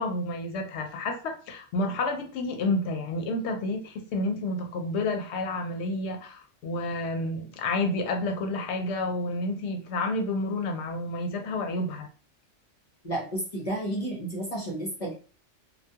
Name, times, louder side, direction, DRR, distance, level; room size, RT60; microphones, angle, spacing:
voice 1, 0.0-12.1, left 2 dB, 70° left, 0.8 m, -30 dB
voice 2, 13.0-15.1, right 1 dB, 40° left, 0.5 m, -31 dB
2.2 x 2.2 x 2.7 m
omnidirectional pair, 1.2 m